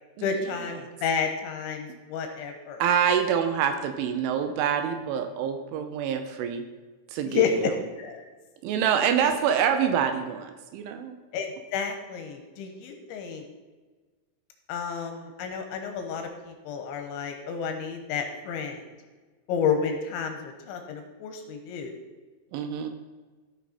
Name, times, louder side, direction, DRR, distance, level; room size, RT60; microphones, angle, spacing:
voice 1, 0.2-2.8 7.3-7.5 8.0-8.2 9.2-9.4 11.3-11.5 11.7-13.4 14.7-18.8 19.5-22.0, left 7 dB, 80° left, 5 dB, 3.0 m, -31 dB
voice 2, 2.8-6.7 7.1-7.7 8.6-11.2 22.5-22.9, right 8 dB, 80° right, 7 dB, 2.9 m, -26 dB
15.0 x 6.1 x 4.2 m, 1.3 s
omnidirectional pair, 5.8 m